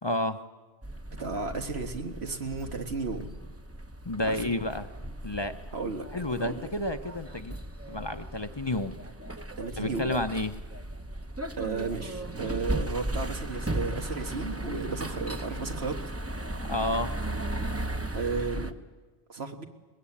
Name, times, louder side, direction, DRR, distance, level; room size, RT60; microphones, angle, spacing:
voice 1, 0.0-0.4 4.0-4.9 5.2-5.5 6.1-7.6 7.9-8.9 9.8-10.5 16.6-17.2, left 1 dB, 30° left, 9 dB, 0.7 m, -30 dB
sound 1, 0.8-18.7, right 1 dB, 15° right, 0.8 m, -36 dB
voice 2, 1.2-3.3 4.2-4.4 5.7-6.1 6.4-6.6 9.6-10.1 11.6-16.0 18.1-18.8 19.3-19.6, right 4 dB, 90° right, 4 dB, 2.0 m, -34 dB
21.5 x 20.5 x 8.6 m, 1.3 s
omnidirectional pair, 1.0 m